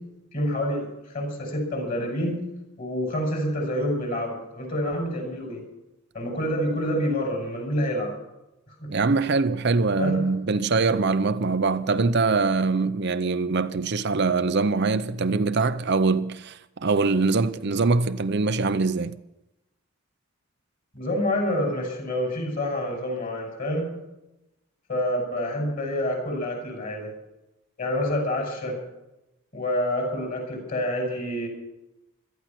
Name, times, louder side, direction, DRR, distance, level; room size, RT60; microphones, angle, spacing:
voice 1, 0.3-2.4 2.8-5.6 6.1-8.1 8.8-8.9 9.9-10.2 20.9-23.9 24.9-27.1 27.8-28.8 29.5-31.5, left 1 dB, 40° left, 5.9 m, -27 dB
voice 2, 8.9-19.2, right 4 dB, 50° right, 0.6 m, -23 dB
17.5 x 13.0 x 6.0 m
head